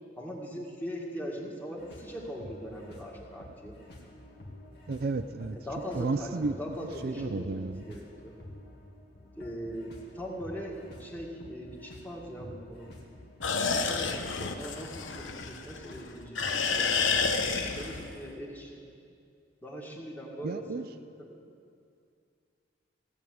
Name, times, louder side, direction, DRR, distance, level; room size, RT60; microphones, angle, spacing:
voice 1, 0.2-3.8 5.5-8.4 9.4-12.9 13.7-17.4 17.8-18.9 19.6-20.9 21.2-21.4, equal, 10° left, -2 dB, 2.0 m, -41 dB
sound 1, 1.8-18.3, left 1 dB, 60° left, 2.1 m, -50 dB
voice 2, 4.9-5.6 5.9-6.6 7.0-8.0 20.4-20.9, right 3 dB, 50° right, 9 dB, 0.4 m, -32 dB
sound 2, 13.4-16.0 16.4-18.2, left 5 dB, 85° left, 1.0 m, -30 dB
17.0 x 7.3 x 9.4 m, 2.4 s
head